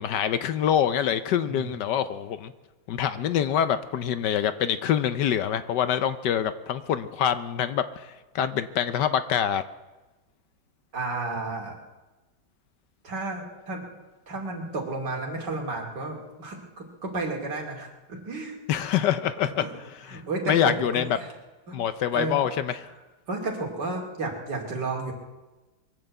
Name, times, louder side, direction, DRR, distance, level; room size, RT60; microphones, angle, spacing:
voice 1, 0.0-2.5 2.9-9.6 18.7-19.6 20.1-20.2 20.5-21.1 21.7-22.9, left 9 dB, 70° left, 12 dB, 1.2 m, -25 dB
voice 2, 10.9-11.8 13.0-13.8 14.3-18.5 19.6-19.7 20.1-21.3 21.7-21.8 22.1-22.4 23.3-25.1, right 3 dB, 60° right, 1 dB, 3.1 m, -32 dB
22.5 x 7.8 x 7.9 m, 1.1 s
omnidirectional pair, 2.1 m